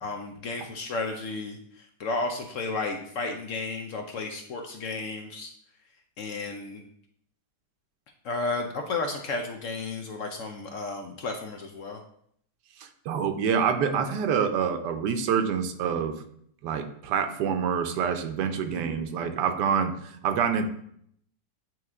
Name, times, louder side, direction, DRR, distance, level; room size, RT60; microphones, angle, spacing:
voice 1, 0.0-5.5 6.2-6.8 8.2-12.0 18.7-19.0, left 3 dB, 65° left, 4 dB, 0.8 m, -33 dB
voice 2, 12.8-16.2 16.6-20.7, right 7 dB, 85° right, 8 dB, 1.3 m, -27 dB
8.9 x 3.1 x 3.6 m, 0.68 s
omnidirectional pair, 1.8 m